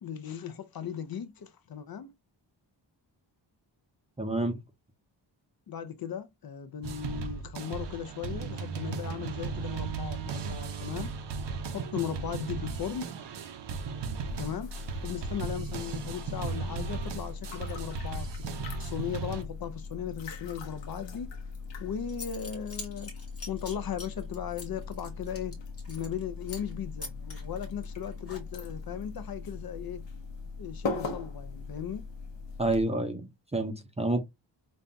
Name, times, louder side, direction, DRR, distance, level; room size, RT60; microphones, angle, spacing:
voice 1, 0.0-2.1 5.7-11.1 11.7-13.1 14.4-18.5 18.8-21.3 21.8-23.1 23.5-25.6 25.9-30.0 30.6-32.1, left 8 dB, 50° left, 0.5 m, -37 dB
voice 2, 4.2-4.6 32.6-34.2, right 2 dB, 15° right, 0.5 m, -29 dB
sound 1, 6.8-19.4, right 5 dB, 65° right, 0.7 m, -36 dB
sound 2, 14.3-32.8, left 4 dB, 70° left, 1.0 m, -40 dB
Zipper (clothing) / Coin (dropping), 21.7-21.8 22.1-26.2 26.5-26.7 27.0-28.8, left 3 dB, 30° left, 1.2 m, -44 dB
5.3 x 2.2 x 2.6 m
wide cardioid pair, 165°, 46 cm